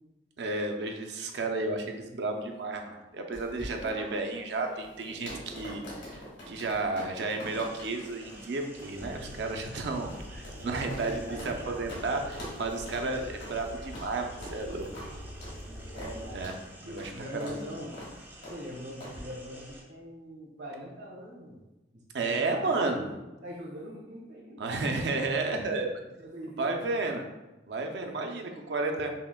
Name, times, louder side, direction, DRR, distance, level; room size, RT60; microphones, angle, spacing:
voice 1, 0.4-6.2 6.5-14.9 16.3-16.5 16.8-17.6 22.1-23.0 24.6-25.9 26.6-27.2 27.7-29.1, right 3 dB, 65° right, 3 dB, 0.5 m, -32 dB
sound 1, 3.3-11.6 11.9-12.0 12.3-12.6 12.9-13.0 13.4-13.6 13.9-14.1 14.4-14.6 14.9-15.1 15.4-15.6 16.0-16.1 16.4-16.6 17.0-17.1 17.4-17.6 17.9-18.1 18.4-18.6 19.0-19.2, equal, 75° left, 1.5 m, -44 dB
sound 2, 7.4-19.8, right 1 dB, 10° right, 0.5 m, -51 dB
sound 3, 8.9-16.4, left 1 dB, 40° left, 0.6 m, -44 dB
voice 2, 10.6-12.1 15.6-16.4 16.8-17.9 18.5-21.6 21.9-24.7 25.5-25.7 26.0-26.9 28.0-28.1, equal, 85° right, -3 dB, 1.3 m, -43 dB
5.5 x 2.1 x 2.2 m, 1.0 s
head